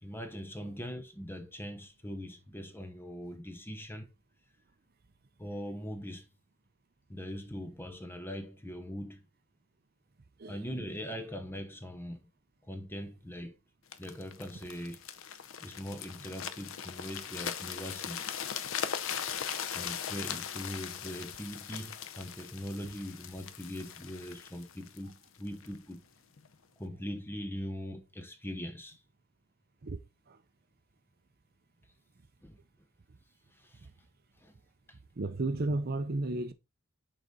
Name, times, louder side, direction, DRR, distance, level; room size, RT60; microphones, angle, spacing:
voice 1, 0.0-4.1 5.4-6.3 7.1-9.3 10.5-12.3 12.7-13.6 14.0-15.0 15.6-18.2 19.6-26.0 26.8-29.0 32.4-32.6 33.5-33.9 34.4-34.5 34.9-35.0, equal, 10° left, 0.8 m, -41 dB
voice 2, 10.4-10.8 29.8-30.0 30.3-30.4 35.2-36.5, right 2 dB, 45° right, 0.6 m, -33 dB
sound 1, 13.9-25.8 26.4-26.5, left 8 dB, 65° left, 0.6 m, -39 dB
6.6 x 3.9 x 3.6 m
head